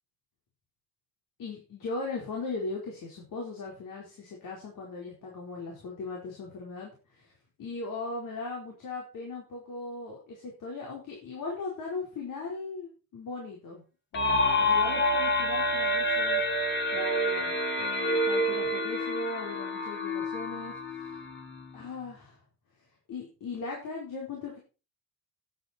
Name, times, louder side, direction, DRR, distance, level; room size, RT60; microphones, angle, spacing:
voice 1, 1.4-7.3 7.6-13.8 14.1-16.4 16.9-21.2 21.7-22.4 23.1-24.6, left 3 dB, 65° left, -2 dB, 4.7 m, -38 dB
sound 1, 14.1-21.8, left 1 dB, 35° left, 2.4 m, -28 dB
11.5 x 10.0 x 4.5 m, 0.34 s
cardioid pair, 130°, 35 cm